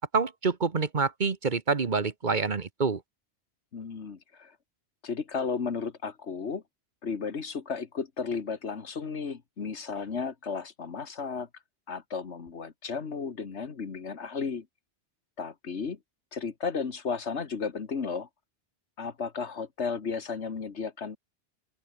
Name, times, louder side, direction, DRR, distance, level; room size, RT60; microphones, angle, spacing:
voice 1, 0.1-3.0, right 4 dB, 45° right, 1.3 m, -27 dB
voice 2, 3.7-4.6 5.0-6.6 7.0-11.5 11.9-14.7 15.4-16.0 16.3-18.3 19.0-21.2, left 5 dB, 75° left, 1.9 m, -34 dB
open air
omnidirectional pair, 1.2 m